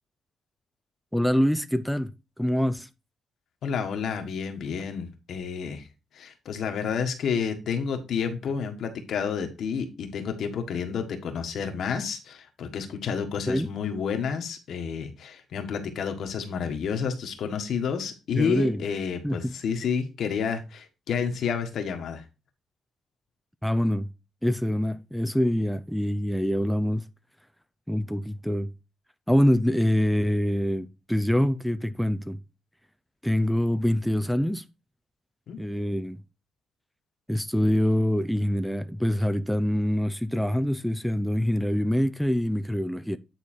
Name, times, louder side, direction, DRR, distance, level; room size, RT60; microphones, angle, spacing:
voice 1, 1.1-2.1 2.4-2.9 13.5-13.7 18.4-18.8 19.2-19.5 23.6-24.1 24.4-27.1 27.9-28.7 29.3-32.4 33.2-34.7 35.6-36.2 37.3-43.2, equal, ahead, 0.5 m, -25 dB
voice 2, 3.6-5.8 6.1-22.2 35.5-35.6, left 6 dB, 65° left, 1.6 m, -30 dB
9.5 x 4.0 x 4.4 m
cardioid pair, 90°, 0 cm